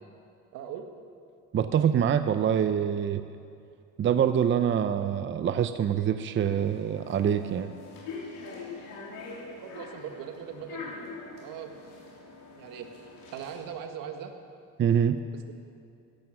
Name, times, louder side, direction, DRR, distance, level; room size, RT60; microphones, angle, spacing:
voice 1, 0.5-0.9 9.5-10.9 11.4-11.7 12.6-12.9 13.3-14.3 15.3-15.5, right 8 dB, 75° right, 6 dB, 1.5 m, -40 dB
voice 2, 1.5-3.2 4.0-7.7 14.8-15.2, right 8 dB, 35° right, 10 dB, 0.6 m, -25 dB
sound 1, 6.4-13.7, left 4 dB, 85° left, 3.6 m, -43 dB
16.5 x 12.0 x 6.2 m, 2.4 s
cardioid pair, 100°, 33 cm